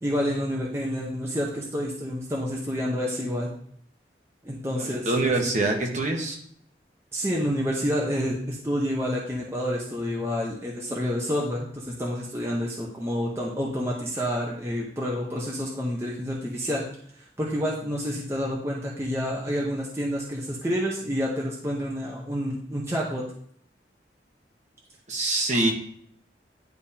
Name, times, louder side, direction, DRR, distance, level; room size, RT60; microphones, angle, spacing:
voice 1, 0.0-3.5 4.4-5.3 7.1-16.8 17.4-23.2, equal, 15° right, -3 dB, 0.7 m, -29 dB
voice 2, 4.8-6.4 25.1-25.7, right 2 dB, 40° right, 0 dB, 1.1 m, -25 dB
10.0 x 3.5 x 2.8 m, 0.63 s
head